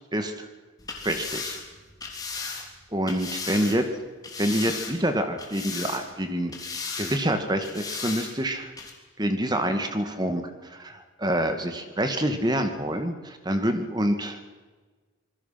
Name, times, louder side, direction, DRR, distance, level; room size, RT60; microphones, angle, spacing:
voice 1, 0.1-0.5 1.0-1.6 2.4-2.6 2.9-3.8 4.4-6.5 7.0-8.7 9.2-14.4, right 1 dB, 20° right, 7 dB, 2.1 m, -27 dB
sound 1, 0.8-3.8 4.2-5.1 5.4-6.2 6.5-7.2 7.6-8.3 8.8-8.9, left 4 dB, 20° left, 3.2 m, -35 dB
26.5 x 21.0 x 5.9 m, 1.4 s
head